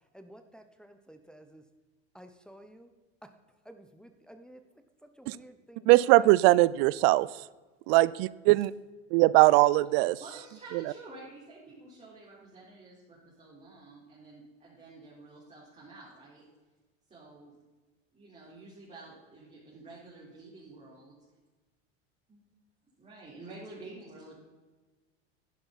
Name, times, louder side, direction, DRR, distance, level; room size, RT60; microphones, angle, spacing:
voice 1, 0.1-1.6 2.1-2.9 3.6-4.6 5.0-6.3, right 1 dB, ahead, 6 dB, 0.9 m, -52 dB
voice 2, 5.9-7.3 7.9-8.7 9.1-10.2, right 19 dB, 65° right, 20 dB, 0.5 m, -21 dB
voice 3, 10.0-16.4 17.1-17.5 18.1-21.2 22.3-22.4 23.0-24.4, right 2 dB, 20° right, -7 dB, 4.1 m, -50 dB
11.0 x 10.5 x 4.1 m, 1.2 s
supercardioid pair, 105°, 33 cm